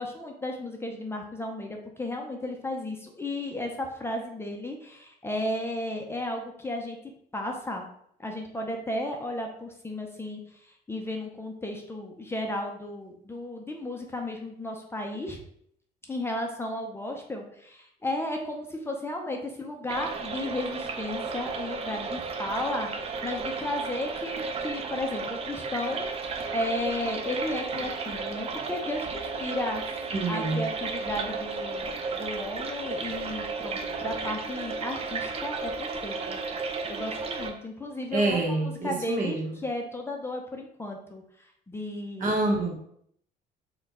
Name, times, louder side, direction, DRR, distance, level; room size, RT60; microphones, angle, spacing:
voice 1, 0.0-7.0 7.3-7.9 8.2-15.4 16.1-36.4 36.9-42.3, left 1 dB, 15° left, 2 dB, 0.6 m, -34 dB
sound 1, 19.9-37.5, right 4 dB, 35° right, 0.5 m, -33 dB
voice 2, 30.1-30.6 38.1-39.6 42.2-42.8, right 2 dB, 50° right, 0 dB, 1.1 m, -27 dB
4.1 x 2.3 x 4.1 m, 0.68 s
cardioid pair, 110°, 17 cm